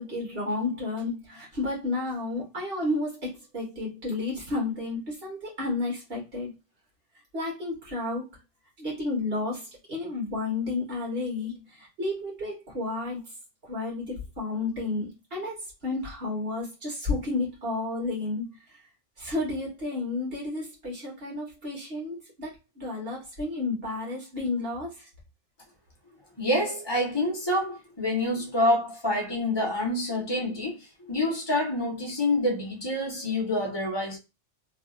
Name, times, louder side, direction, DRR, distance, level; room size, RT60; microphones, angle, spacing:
voice 1, 0.0-6.5 7.3-8.2 8.8-13.2 13.7-15.6 15.8-18.4 19.2-25.0, left 2 dB, 55° right, 1.6 m, -31 dB
voice 2, 26.4-34.2, left 1 dB, 20° left, 1.1 m, -27 dB
3.3 x 2.6 x 2.4 m
omnidirectional pair, 1.2 m